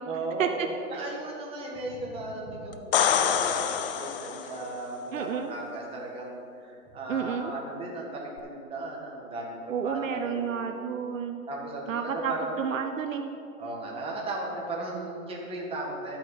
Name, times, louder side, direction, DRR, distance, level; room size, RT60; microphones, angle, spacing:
voice 1, 0.0-10.7 11.5-12.5 13.6-16.2, right 2 dB, 15° right, -2 dB, 1.6 m, -36 dB
sound 1, 2.7-4.7 8.4-8.5, left 8 dB, 40° left, 0.6 m, -26 dB
voice 2, 5.1-5.5 7.1-7.5 9.7-11.4 11.9-13.3, right 7 dB, 65° right, 6 dB, 0.8 m, -30 dB
12.5 x 8.8 x 4.1 m, 2.5 s
hypercardioid pair, 140°, 43 cm